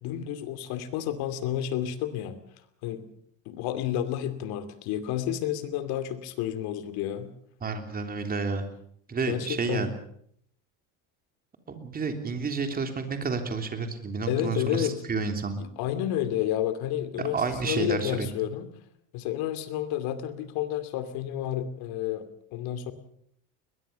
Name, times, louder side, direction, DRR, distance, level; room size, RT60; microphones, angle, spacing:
voice 1, 0.0-2.4 2.8-3.1 3.5-7.3 9.3-9.9 14.3-15.0 15.6-18.7 19.1-22.9, left 11 dB, 65° left, 11 dB, 2.7 m, -30 dB
voice 2, 7.6-8.7 9.1-9.9 11.7-15.6 17.3-18.3, right 4 dB, 20° right, 6 dB, 3.3 m, -30 dB
21.5 x 21.0 x 6.9 m, 0.67 s
cardioid pair, 140°, 40 cm